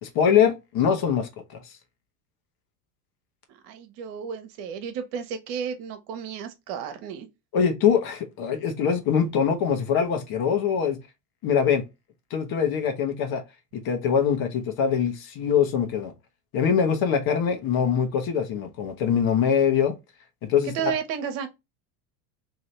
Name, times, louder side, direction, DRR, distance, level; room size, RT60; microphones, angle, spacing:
voice 1, 0.0-1.7 7.5-11.0 11.4-11.8 12.3-13.4 13.7-16.1 16.5-19.9 20.5-21.0, left 7 dB, 45° left, 1.1 m, -23 dB
voice 2, 3.6-7.3 20.6-21.5, right 7 dB, 60° right, 1.0 m, -32 dB
2.8 x 2.7 x 3.2 m
hypercardioid pair, 85°, 49 cm